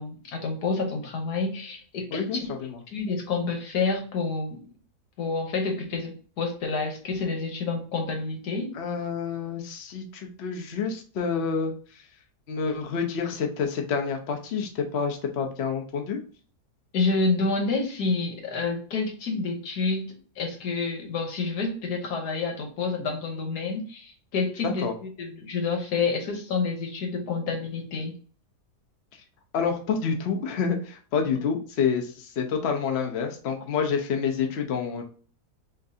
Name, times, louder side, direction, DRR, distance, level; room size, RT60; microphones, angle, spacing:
voice 1, 0.0-4.6 5.2-8.7 16.9-28.1, left 4 dB, 85° left, 3 dB, 1.5 m, -29 dB
voice 2, 2.1-2.8 8.7-11.7 12.5-16.2 24.6-24.9 29.5-35.0, left 6 dB, 50° left, 3 dB, 0.9 m, -28 dB
6.4 x 2.6 x 2.7 m, 0.41 s
omnidirectional pair, 1.7 m